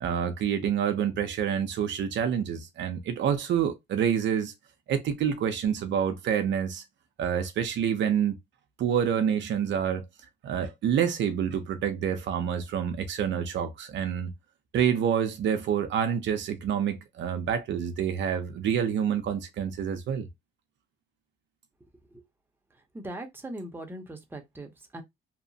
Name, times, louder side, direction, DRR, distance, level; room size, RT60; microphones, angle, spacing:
voice 1, 0.0-4.5 4.9-6.8 7.2-8.4 8.8-10.1 10.4-14.3 14.7-20.3, right 8 dB, 65° right, 0.5 m, -27 dB
voice 2, 22.9-25.0, right 1 dB, 10° right, 0.7 m, -40 dB
2.9 x 2.1 x 2.6 m
cardioid pair, 90°, 20 cm